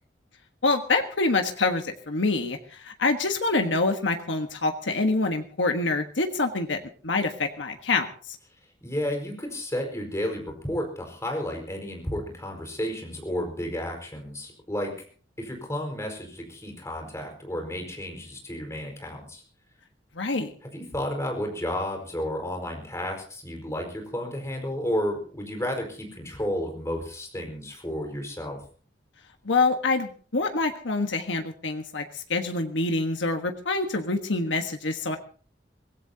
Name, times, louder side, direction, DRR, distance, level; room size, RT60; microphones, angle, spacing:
voice 1, 0.6-8.4 20.2-20.5 29.4-35.2, left 3 dB, 90° left, 5 dB, 1.4 m, -26 dB
voice 2, 8.8-14.9 15.4-19.4 20.6-28.6, equal, 15° left, 2 dB, 4.9 m, -32 dB
24.0 x 17.0 x 2.8 m, 0.42 s
head